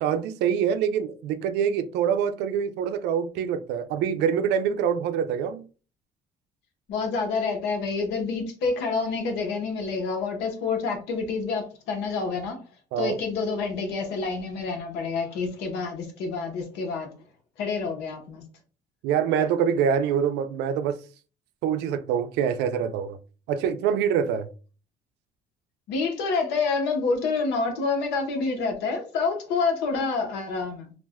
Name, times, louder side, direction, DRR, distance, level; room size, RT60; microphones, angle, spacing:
voice 1, 0.0-5.6 12.9-13.2 19.0-21.0 21.6-23.2 23.5-24.5, right 8 dB, 85° right, 0.4 m, -25 dB
voice 2, 6.9-12.6 13.0-17.1 17.6-18.4 25.9-30.9, left 4 dB, 90° left, 0.8 m, -28 dB
2.4 x 2.1 x 3.4 m
cardioid pair, 110°, 17 cm